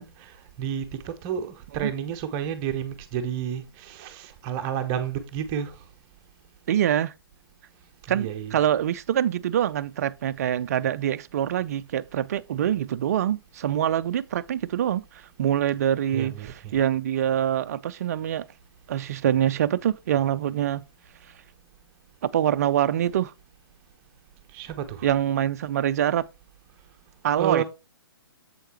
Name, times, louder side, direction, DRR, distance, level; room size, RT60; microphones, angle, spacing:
voice 1, 0.0-5.8 8.1-8.6 16.1-16.7 24.5-25.1 27.4-27.6, right 8 dB, 25° right, 0.8 m, -31 dB
voice 2, 6.7-7.1 8.1-18.5 18.9-20.8 22.2-23.3 25.0-26.3 27.2-27.6, right 10 dB, 40° right, 0.4 m, -25 dB
7.9 x 7.7 x 2.9 m
figure-of-eight pair, 125°, 13 cm